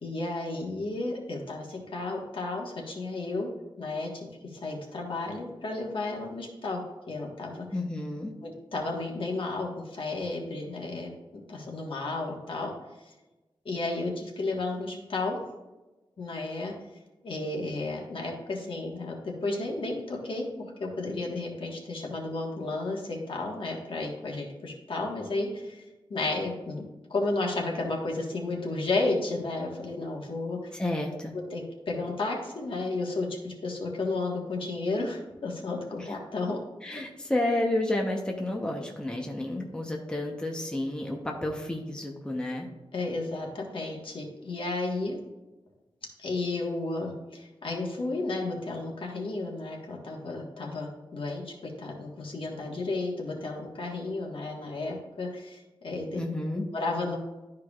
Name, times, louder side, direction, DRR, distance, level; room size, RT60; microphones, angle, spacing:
voice 1, 0.0-3.5 3.8-6.8 7.1-7.6 8.4-11.1 11.5-12.7 13.6-15.4 16.2-16.7 17.2-20.5 20.8-25.8 26.1-26.8 27.1-30.7 31.5-36.6 42.9-45.2 46.2-56.2 56.5-57.2, left 2 dB, 65° left, -1 dB, 1.5 m, -32 dB
voice 2, 7.7-8.3 30.7-31.3 36.0-36.1 36.8-42.7 56.1-56.6, left 1 dB, 10° left, 0 dB, 0.8 m, -31 dB
12.0 x 4.7 x 2.4 m, 1.1 s
wide cardioid pair, 145°, 10 cm